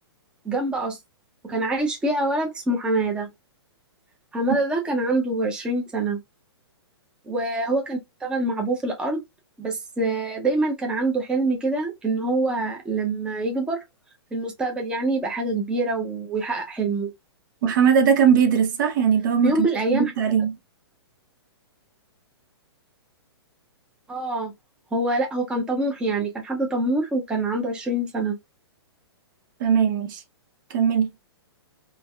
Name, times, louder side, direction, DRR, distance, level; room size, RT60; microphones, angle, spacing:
voice 1, 0.4-1.0 1.5-3.3 4.3-6.2 7.3-9.2 9.6-13.8 14.3-17.1 19.4-20.1 24.1-24.5 24.9-28.4, right 2 dB, 5° right, 0.6 m, -25 dB
voice 2, 17.6-19.6 19.9-20.5 29.6-30.2 30.7-31.1, right 7 dB, 50° right, 0.6 m, -19 dB
3.3 x 2.1 x 2.2 m
hypercardioid pair, 145°, 14 cm